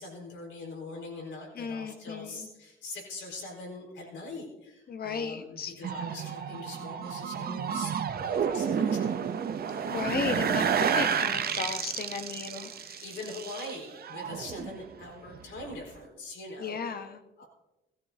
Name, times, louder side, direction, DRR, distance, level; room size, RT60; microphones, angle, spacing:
voice 1, 0.0-10.2 10.5-10.7 12.5-12.7 13.0-17.0 17.4-17.5, left 2 dB, 75° left, 0 dB, 4.9 m, -43 dB
voice 2, 1.5-2.5 4.9-5.7 9.9-10.7 11.0-13.0 16.6-17.4, left 6 dB, 50° left, 9 dB, 1.1 m, -35 dB
sound 1, 5.8-15.0 15.3-15.7, right 7 dB, 50° right, 0.8 m, -31 dB
16.5 x 13.5 x 2.9 m, 1.0 s
cardioid pair, 90°, 20 cm